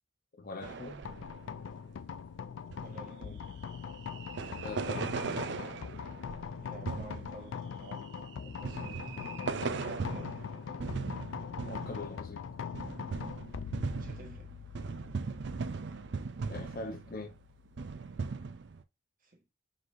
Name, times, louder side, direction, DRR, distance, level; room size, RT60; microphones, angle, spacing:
voice 1, 0.4-1.1 4.6-5.1 11.6-12.5 16.5-17.4, left 2 dB, 50° left, 0.8 m, -42 dB
sound 1, 0.6-2.1 2.4-2.5 2.7-3.0 3.7-17.4 17.7-18.8, right 4 dB, 60° right, 0.4 m, -39 dB
sound 2, 1.0-18.3, left 7 dB, 75° left, 0.3 m, -42 dB
voice 2, 2.8-3.5 6.5-10.4 13.9-14.5 19.2-19.4, right 2 dB, 45° right, 1.3 m, -51 dB
4.7 x 4.0 x 2.5 m
head